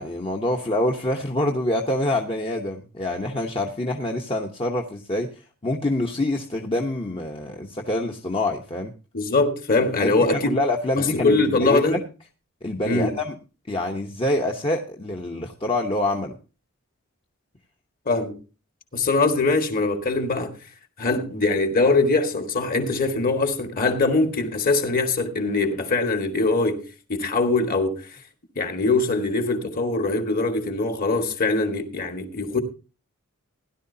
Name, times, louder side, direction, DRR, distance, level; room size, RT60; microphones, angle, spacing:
voice 1, 0.0-8.9 10.0-12.0 12.6-13.3 13.7-16.3, left 1 dB, 25° left, 1.0 m, -26 dB
voice 2, 9.1-10.6 11.0-12.0 12.9-13.1 18.1-18.3 18.9-20.5 21.0-28.1 28.6-32.6, left 3 dB, 40° left, 1.8 m, -22 dB
16.5 x 11.5 x 2.8 m
head